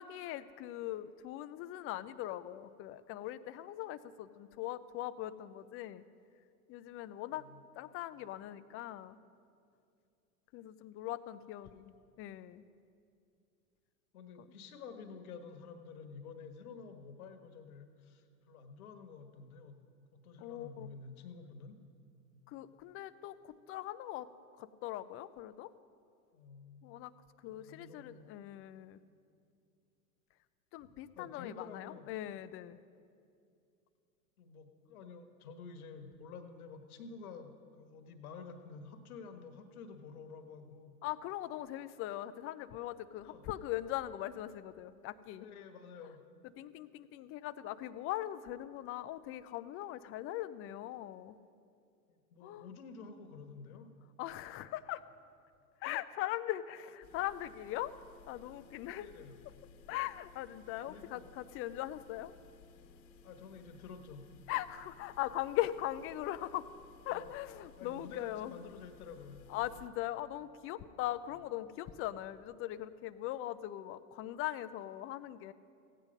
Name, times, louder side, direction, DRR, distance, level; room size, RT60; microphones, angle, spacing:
voice 1, 0.0-6.0 6.7-7.5 7.8-9.2 10.5-12.6 14.4-14.5 20.4-20.9 22.5-24.3 24.6-25.7 26.8-27.1 27.4-29.0 30.7-32.8 41.0-45.5 46.6-51.4 52.4-52.7 54.2-55.0 55.8-57.9 58.3-59.1 59.9-62.3 64.5-66.7 67.1-68.6 69.5-75.5, left 14 dB, 30° left, 14 dB, 0.5 m, -40 dB
voice 2, 7.3-7.6 11.7-11.8 14.1-19.8 20.1-21.8 26.3-26.8 27.5-28.3 30.8-32.1 34.4-40.9 43.2-43.4 45.4-46.2 52.1-53.9 58.9-59.4 60.9-61.2 63.2-64.3 67.1-67.3 67.8-69.4, left 5 dB, 70° left, 6 dB, 1.4 m, -50 dB
sound 1, 57.0-69.9, left 5 dB, 50° left, 1.2 m, -59 dB
16.0 x 9.1 x 5.3 m, 2.4 s
hypercardioid pair, 95°, 44 cm